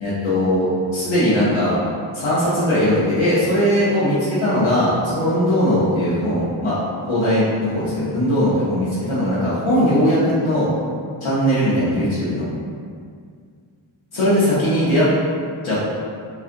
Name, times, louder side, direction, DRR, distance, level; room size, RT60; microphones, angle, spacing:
voice 1, 0.0-1.8 2.1-10.7 11.2-12.5 14.1-15.1 15.6-15.8, equal, 75° left, -11 dB, 1.0 m, -19 dB
3.8 x 3.2 x 2.5 m, 2.1 s
cardioid pair, 45°, 48 cm